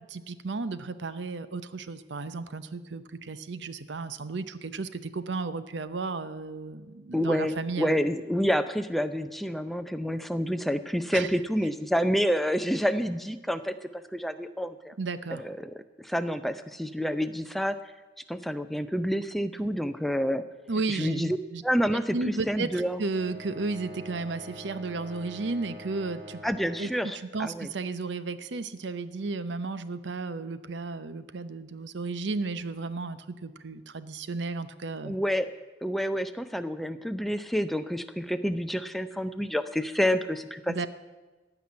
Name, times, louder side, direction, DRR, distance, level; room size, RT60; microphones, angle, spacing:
voice 1, 0.1-8.0 11.1-11.3 15.0-15.4 20.7-21.6 21.9-26.4 26.8-26.9 27.3-35.2 40.7-40.9, right 3 dB, 75° right, 13 dB, 0.7 m, -33 dB
voice 2, 7.1-14.9 15.3-17.8 18.3-20.4 20.9-21.4 21.6-23.0 26.4-27.7 35.0-35.5 35.8-40.9, equal, ahead, 10 dB, 0.5 m, -28 dB
sound 1, 23.0-26.9, equal, 25° right, 3.7 m, -45 dB
15.0 x 5.9 x 9.7 m, 1.2 s
head